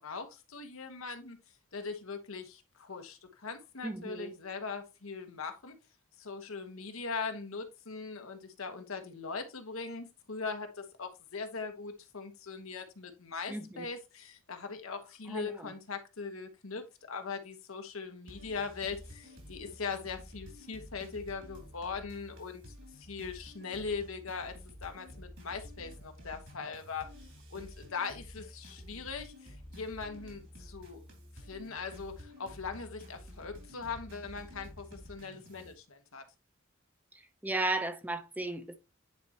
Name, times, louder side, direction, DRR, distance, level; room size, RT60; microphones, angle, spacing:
voice 1, 0.0-1.4 1.7-5.8 6.2-24.5 24.8-27.1 27.5-31.0 31.4-36.2, left 5 dB, 85° left, 1.2 m, -40 dB
voice 2, 3.8-4.3 13.5-13.9 15.3-15.7 37.1-38.8, right 2 dB, 10° right, 0.6 m, -35 dB
sound 1, 18.3-35.7, equal, 60° right, 2.9 m, -50 dB
9.4 x 4.3 x 2.9 m
head